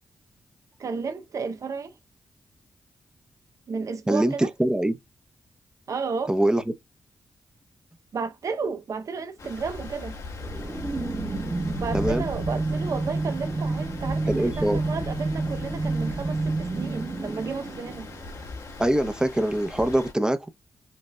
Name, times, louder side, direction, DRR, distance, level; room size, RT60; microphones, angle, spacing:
voice 1, 0.8-1.9 3.7-4.5 5.9-6.4 8.1-10.2 11.7-18.1, right 5 dB, 60° right, 0.6 m, -32 dB
voice 2, 4.1-4.9 6.3-6.6 11.9-12.3 14.3-14.8 18.8-20.4, right 1 dB, 10° right, 0.7 m, -23 dB
Stream, 9.4-20.1, left 3 dB, 65° left, 1.3 m, -39 dB
sound 1, 10.4-18.6, right 2 dB, 35° right, 1.0 m, -29 dB
5.3 x 2.5 x 2.2 m
cardioid pair, 55°, 6 cm